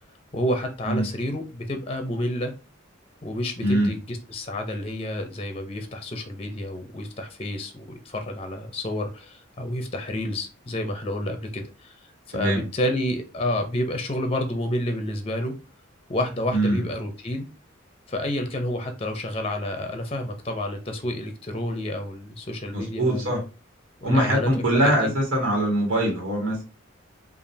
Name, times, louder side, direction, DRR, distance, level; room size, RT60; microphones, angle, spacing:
voice 1, 0.3-2.5 3.2-12.0 12.3-15.5 16.1-17.5 18.1-23.4 24.0-24.5 24.8-25.1, left 1 dB, 30° left, 6 dB, 0.6 m, -29 dB
voice 2, 3.6-3.9 12.3-12.6 16.5-16.8 22.7-23.4 24.0-26.6, right 1 dB, 75° right, 0 dB, 1.7 m, -22 dB
5.1 x 2.5 x 2.7 m, 0.32 s
head